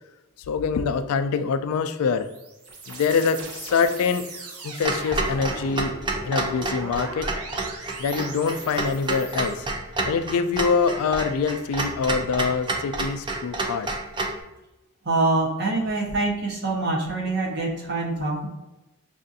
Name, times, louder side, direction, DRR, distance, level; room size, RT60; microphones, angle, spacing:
voice 1, 0.5-2.3 2.9-4.3 4.6-6.0 6.3-7.3 8.0-9.7 10.0-13.9, left 5 dB, 75° left, 9 dB, 0.3 m, -24 dB
sound 1, 1.9-9.5, right 3 dB, 85° right, 0.7 m, -39 dB
Clock, 4.8-14.4, right 2 dB, 20° right, 0.4 m, -29 dB
voice 2, 15.0-18.5, right 2 dB, 50° right, -1 dB, 0.9 m, -25 dB
5.4 x 2.5 x 2.6 m, 1.0 s
head